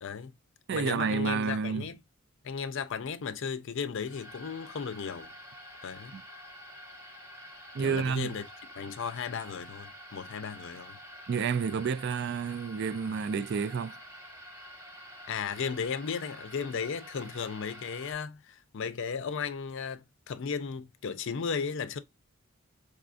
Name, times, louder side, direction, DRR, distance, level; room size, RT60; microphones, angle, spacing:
voice 1, 0.0-0.3 0.7-2.0 2.4-5.3 5.8-6.2 7.8-8.4 8.8-11.0 15.3-22.0, left 6 dB, 60° left, 0.5 m, -35 dB
voice 2, 0.7-1.9 6.1-6.2 7.7-8.3 11.3-14.0, right 6 dB, 50° right, 0.3 m, -30 dB
sound 1, 4.0-18.1, equal, 15° right, 0.9 m, -48 dB
4.8 x 2.4 x 2.4 m
head